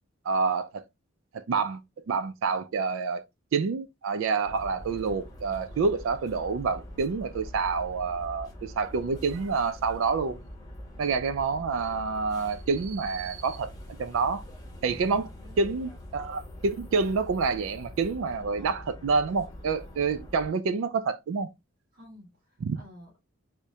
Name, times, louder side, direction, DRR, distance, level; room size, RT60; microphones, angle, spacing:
voice 1, 0.3-0.8 1.3-1.8 2.1-3.2 3.5-10.4 11.0-13.7 14.0-14.4 14.8-15.3 15.6-21.5 22.6-22.8, right 4 dB, 65° right, 0.3 m, -28 dB
sound 1, 4.5-20.5, left 1 dB, 20° left, 0.9 m, -44 dB
voice 2, 14.9-15.6 21.9-23.2, equal, 45° right, 1.9 m, -50 dB
4.6 x 2.1 x 2.7 m
head